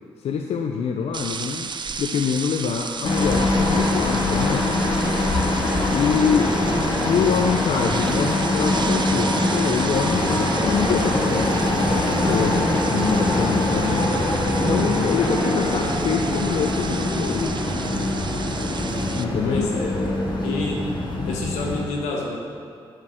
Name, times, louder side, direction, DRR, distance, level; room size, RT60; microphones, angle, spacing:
voice 1, 0.2-1.7 2.0-4.8 5.9-6.5 7.1-11.6 11.9-17.5 19.1-19.7 21.2-21.3, left 7 dB, 65° left, 3 dB, 0.5 m, -25 dB
sound 1, 1.1-19.2, right 5 dB, 40° right, 0.5 m, -34 dB
sound 2, 3.0-21.8, left 1 dB, 45° left, 1.9 m, -23 dB
voice 2, 6.0-6.8 19.4-20.8 21.2-22.4, left 3 dB, 85° left, -2 dB, 1.2 m, -30 dB
Trumpet, 9.9-18.1, right 3 dB, 60° right, 2.3 m, -43 dB
8.7 x 4.5 x 6.2 m, 2.3 s
hypercardioid pair, 45°, 11 cm